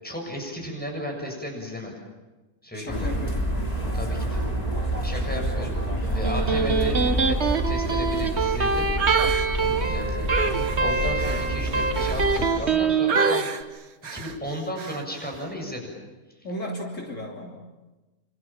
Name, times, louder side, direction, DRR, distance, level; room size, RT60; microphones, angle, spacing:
voice 1, 0.0-1.9 2.6-3.2 3.9-4.4 5.0-5.8 6.1-7.0 7.2-8.9 9.6-15.9 16.3-16.5, equal, 5° left, 1 dB, 7.3 m, -34 dB
voice 2, 2.7-3.4 5.3-5.4 9.6-10.0 16.4-17.6, equal, 60° left, 0 dB, 3.7 m, -35 dB
sound 1, 2.9-12.5, right 1 dB, 25° left, 3.6 m, -28 dB
Electric guitar, 6.0-13.4, right 4 dB, 50° right, 1.9 m, -25 dB
sound 2, 9.0-9.5 10.3-12.7 13.1-13.6 14.0-14.4 14.8-15.0, right 6 dB, 90° right, 1.7 m, -29 dB
28.5 x 27.0 x 7.5 m, 1.1 s
omnidirectional pair, 1.5 m